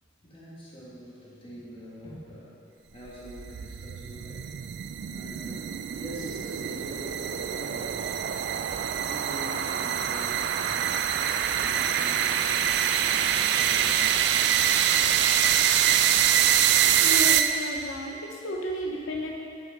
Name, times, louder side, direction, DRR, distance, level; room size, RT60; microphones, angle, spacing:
voice 1, 0.2-2.6 2.9-4.5 5.1-8.1 8.9-11.1 11.6-12.7 12.9-14.2, equal, 30° left, -7 dB, 1.9 m, -44 dB
sound 1, 3.1-17.9, right 9 dB, 60° right, 0.3 m, -25 dB
voice 2, 17.0-19.3, equal, 85° left, -1 dB, 0.7 m, -33 dB
8.6 x 6.5 x 3.7 m, 2.5 s
head